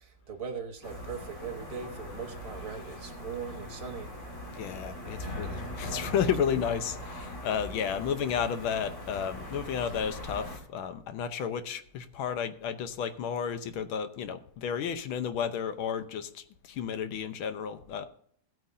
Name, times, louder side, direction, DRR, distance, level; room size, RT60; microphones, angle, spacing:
voice 1, 0.0-4.1, right 6 dB, 25° right, 0.9 m, -40 dB
sound 1, 0.8-10.6, left 1 dB, 40° left, 2.2 m, -41 dB
voice 2, 4.5-18.1, left 7 dB, 90° left, 1.7 m, -32 dB
16.0 x 9.1 x 2.7 m
omnidirectional pair, 2.2 m